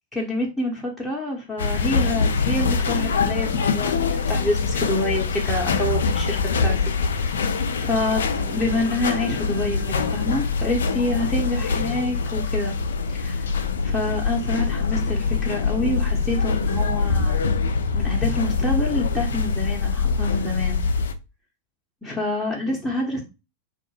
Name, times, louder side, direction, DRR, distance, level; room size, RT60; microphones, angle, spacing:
voice 1, 0.1-6.9 7.8-8.2 8.5-12.7 13.1-13.5 13.8-17.4 17.9-20.8 22.0-23.2, left 2 dB, 5° left, -4 dB, 0.7 m, -27 dB
sound 1, 1.6-21.1, left 4 dB, 65° left, 0.3 m, -24 dB
sound 2, 8.3-12.7, right 4 dB, 75° right, 0.6 m, -42 dB
2.3 x 2.0 x 3.1 m, 0.27 s
figure-of-eight pair, 90°, 0 cm